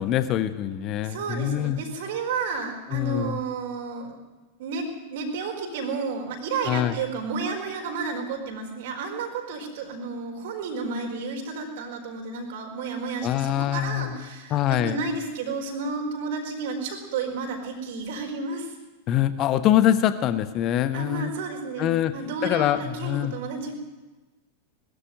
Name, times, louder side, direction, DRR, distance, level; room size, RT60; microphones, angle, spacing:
voice 1, 0.0-1.8 2.9-3.4 6.7-6.9 13.2-14.1 14.5-15.0 19.1-21.3 21.8-22.1 22.4-23.3, left 11 dB, 35° left, 12 dB, 1.2 m, -24 dB
voice 2, 1.0-4.1 4.6-18.7 20.9-23.7, right 4 dB, 55° right, 3 dB, 4.5 m, -31 dB
21.0 x 14.0 x 9.3 m, 1.2 s
figure-of-eight pair, 90°, 0 cm